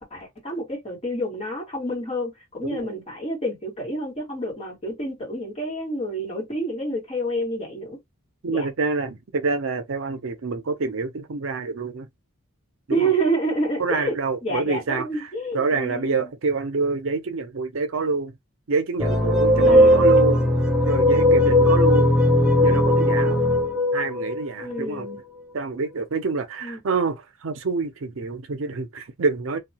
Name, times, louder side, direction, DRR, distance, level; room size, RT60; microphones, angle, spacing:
voice 1, 0.0-8.0 8.5-8.7 12.9-14.1 14.4-16.3 19.5-20.1 24.6-25.2 26.6-26.8, right 1 dB, 30° left, 1.5 m, -28 dB
voice 2, 2.6-2.9 8.4-12.1 12.9-13.1 13.8-18.3 18.7-20.4 20.9-22.1 22.6-23.4 23.9-25.1 25.5-29.6, right 4 dB, 65° right, 0.5 m, -27 dB
sound 1, 19.0-25.2, left 1 dB, 5° right, 0.5 m, -18 dB
2.6 x 2.3 x 2.8 m
head